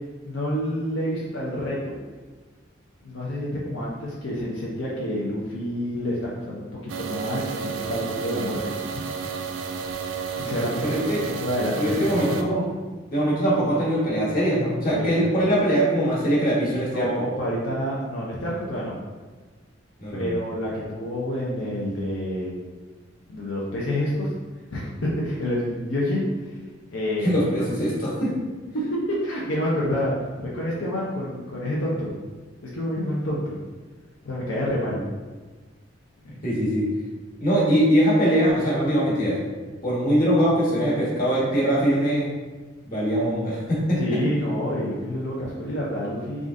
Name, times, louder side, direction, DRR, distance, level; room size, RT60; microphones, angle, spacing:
voice 1, 0.2-2.0 3.0-8.6 8.9-9.0 10.4-10.8 11.4-12.4 14.9-15.2 16.9-19.0 20.1-22.6 23.3-24.3 24.7-26.3 26.9-27.3 28.9-32.1 32.7-33.6 34.2-35.0 44.0-46.5, equal, 80° left, -6 dB, 0.7 m, -28 dB
sound 1, 6.9-12.4, right 5 dB, 75° right, 0.4 m, -31 dB
voice 2, 10.8-11.2 11.8-12.6 13.1-17.2 20.0-20.4 27.2-28.3 36.4-36.9 37.4-39.4 39.8-42.3 42.8-44.2, equal, 50° left, -7 dB, 1.4 m, -22 dB
3.7 x 2.5 x 3.6 m, 1.3 s
head